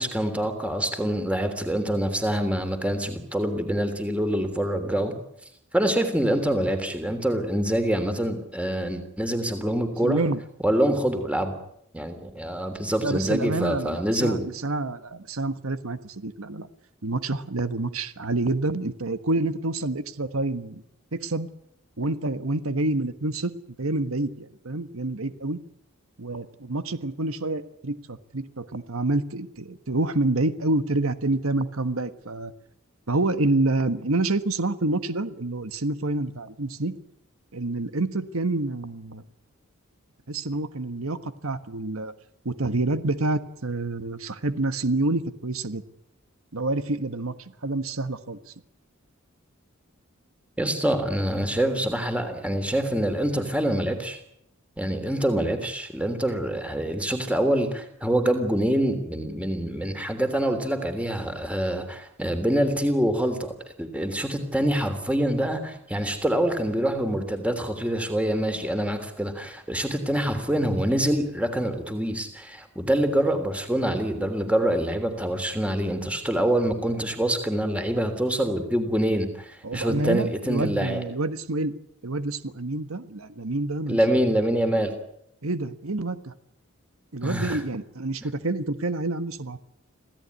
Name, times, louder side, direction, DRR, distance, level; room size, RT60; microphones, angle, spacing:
voice 1, 0.0-5.1 5.7-10.2 10.6-11.5 11.9-14.5 50.6-54.2 54.8-63.5 63.8-81.0 83.9-84.9 87.2-87.6, right 1 dB, 5° right, 7 dB, 3.2 m, -25 dB
voice 2, 10.0-10.4 13.0-16.7 17.0-20.8 21.1-21.5 22.0-23.5 23.8-25.6 26.2-32.5 33.1-36.9 37.5-39.2 40.3-42.1 42.4-45.8 46.5-47.3 47.6-48.4 79.6-81.7 82.0-84.0 85.4-86.3 87.1-89.6, right 2 dB, 90° right, 11 dB, 1.4 m, -27 dB
26.5 x 16.5 x 9.6 m, 0.75 s
head